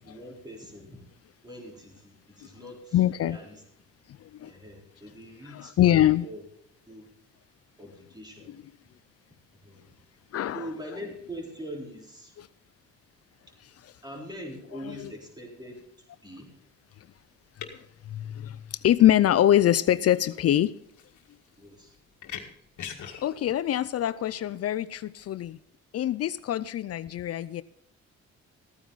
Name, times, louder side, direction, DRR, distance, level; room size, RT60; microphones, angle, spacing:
voice 1, 0.0-1.0 1.4-3.0 3.2-3.6 4.4-6.4 6.9-7.1 7.8-8.5 9.5-9.8 10.5-12.4 14.0-15.8 16.2-16.5 21.6-22.0, equal, 15° right, -1 dB, 4.0 m, -42 dB
voice 2, 2.9-3.4 4.1-4.5 5.4-6.3 8.5-8.6 10.3-10.7 12.4-12.5 13.8-13.9 14.8-15.1 17.6-20.8 23.2-25.6 25.9-27.6, left 12 dB, 55° left, 16 dB, 0.5 m, -24 dB
sound 1, 17.0-25.5, left 8 dB, 75° left, 1.8 m, -45 dB
14.5 x 9.2 x 4.0 m, 0.69 s
cardioid pair, 90°, 30 cm